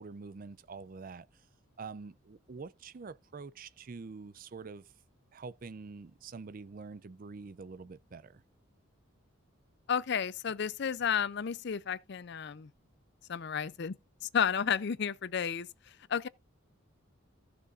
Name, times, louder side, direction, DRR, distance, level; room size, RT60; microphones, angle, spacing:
voice 1, 0.0-1.5 1.8-4.9 5.3-8.4, right 4 dB, 40° right, 0.4 m, -46 dB
voice 2, 9.9-12.7 13.3-13.9 14.2-16.3, left 7 dB, 55° left, 0.5 m, -32 dB
15.0 x 6.7 x 2.5 m
head